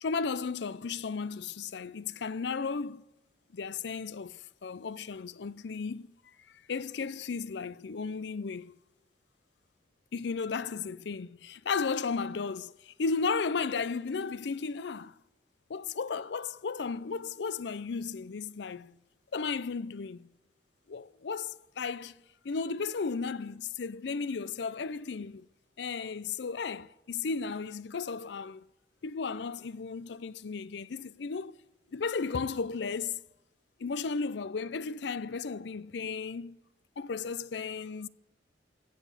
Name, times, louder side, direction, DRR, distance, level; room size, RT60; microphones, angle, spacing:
voice 1, 0.0-3.1 3.5-6.2 6.5-8.8 10.1-15.2 15.7-19.0 19.3-20.3 20.9-25.5 25.8-28.7 29.0-31.6 31.9-33.2 33.8-36.6 37.0-38.1, left 5 dB, 70° left, 0.5 m, -34 dB
15.0 x 7.6 x 8.3 m
head